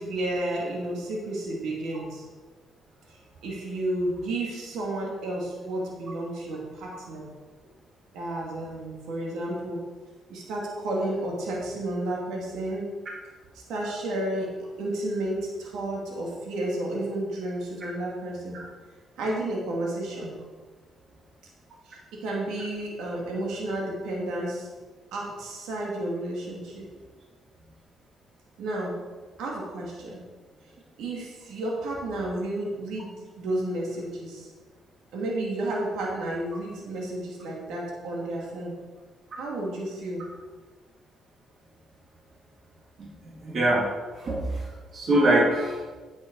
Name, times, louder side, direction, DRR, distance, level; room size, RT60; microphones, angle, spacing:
voice 1, 0.0-2.2 3.1-3.2 3.4-7.3 8.1-9.8 10.3-12.9 13.7-18.6 19.2-20.4 21.8-24.7 25.1-26.8 28.6-29.0 29.4-30.2 31.0-33.1 33.4-34.5 35.1-38.7 39.4-40.3, right 1 dB, 85° right, -2 dB, 2.4 m, -31 dB
voice 2, 43.4-43.9 44.2-44.7 44.9-45.9, right 1 dB, 50° right, -3 dB, 2.6 m, -23 dB
9.4 x 8.4 x 4.8 m, 1.4 s
cardioid pair, 90°, 0 cm